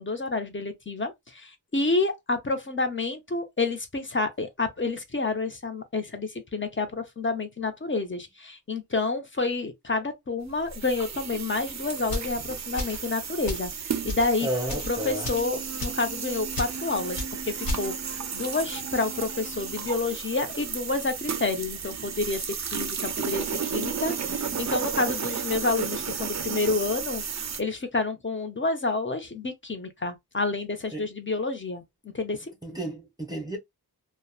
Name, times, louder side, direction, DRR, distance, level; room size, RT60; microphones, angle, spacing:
voice 1, 0.0-14.5 14.9-31.8 32.1-32.5, left 3 dB, 30° left, 0.6 m, -29 dB
sound 1, 10.7-27.6, right 6 dB, 45° right, 0.4 m, -33 dB
sound 2, 12.1-12.3 12.8-13.0 13.5-13.7 14.0-14.3 14.6-14.9 15.2-15.5 15.8-16.0 16.5-16.7 17.2-17.3 17.6-17.9, left 1 dB, 65° left, 1.1 m, -32 dB
voice 2, 14.4-15.3 30.9-31.0 32.6-33.6, right 1 dB, 10° right, 0.7 m, -32 dB
2.8 x 2.1 x 2.3 m
wide cardioid pair, 55°, 38 cm